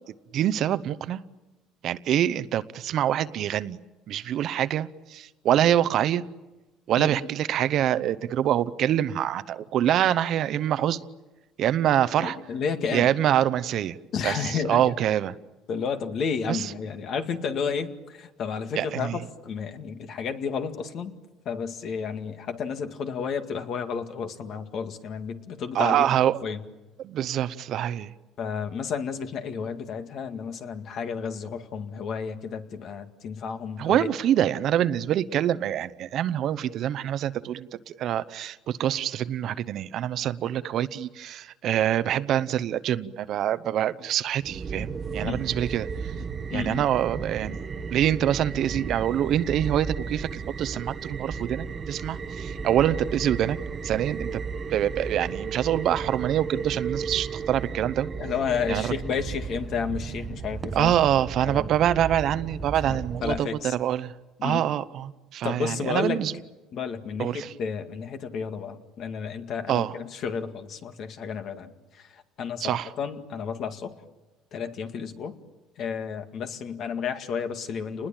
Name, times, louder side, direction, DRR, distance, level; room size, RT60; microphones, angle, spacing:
voice 1, 0.3-1.2 1.8-3.8 4.1-6.2 6.9-11.0 11.6-12.4 12.9-14.0 14.2-15.3 16.5-16.7 18.8-19.2 25.7-26.4 27.0-28.1 33.8-46.1 46.5-53.6 53.8-54.4 54.7-58.1 58.7-58.9 60.7-64.1 64.4-66.3 67.2-67.5 69.7-69.9 72.6-72.9, right 11 dB, 50° right, 15 dB, 0.8 m, -25 dB
voice 2, 7.0-7.3 12.2-13.1 14.1-15.0 15.7-21.1 21.5-26.1 26.4-26.6 28.4-34.1 45.2-45.4 46.2-46.8 58.2-60.9 61.4-61.7 62.9-63.7 64.4-64.6 65.4-66.2 66.7-71.7 72.0-73.9 74.5-75.3 75.8-78.1, left 6 dB, 50° left, 7 dB, 2.1 m, -32 dB
sound 1, 44.4-63.4, right 5 dB, 25° right, 1.1 m, -34 dB
30.0 x 20.5 x 8.9 m, 1.1 s
cardioid pair, 135°, 0 cm